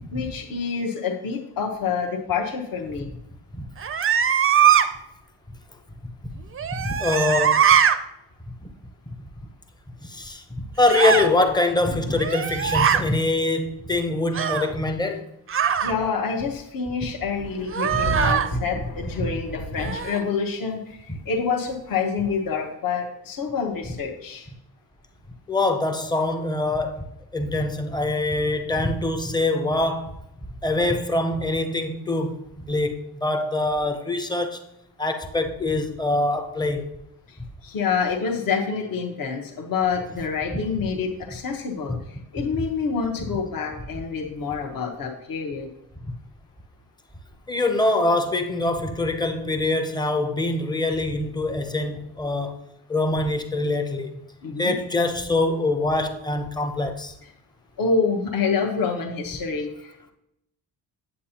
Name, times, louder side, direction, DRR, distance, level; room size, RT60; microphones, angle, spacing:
voice 1, 0.1-3.1 15.8-24.5 37.3-45.7 54.4-54.7 57.8-60.1, left 5 dB, 55° left, 1.1 m, -27 dB
sound 1, 3.8-4.9 6.6-8.0 10.8-11.3 12.1-13.0 14.3-14.7 15.5-15.9 17.7-18.5 19.8-20.2, right 8 dB, 35° right, 0.4 m, -21 dB
voice 2, 6.8-7.7 10.0-10.4 10.8-15.3 18.8-18.9 21.1-21.2 25.5-27.1 27.3-30.2 30.6-32.4 32.7-34.6 35.0-36.9 40.8-40.9 42.5-42.7 47.5-52.6 52.9-54.1 54.6-57.1, left 2 dB, 10° left, 0.6 m, -24 dB
sound 2, 17.4-20.2 21.7-21.8, right 1 dB, 75° left, 1.9 m, -31 dB
8.4 x 7.8 x 2.9 m
wide cardioid pair, 150°, 42 cm